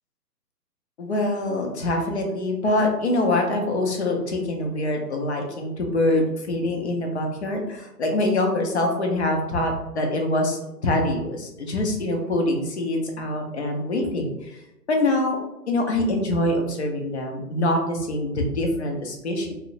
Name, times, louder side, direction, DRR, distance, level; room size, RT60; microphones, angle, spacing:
voice 1, 1.0-14.6 14.9-15.4 15.7-19.5, left 1 dB, 45° left, 2 dB, 0.5 m, -24 dB
2.7 x 2.0 x 2.6 m, 0.90 s
hypercardioid pair, 155°, 49 cm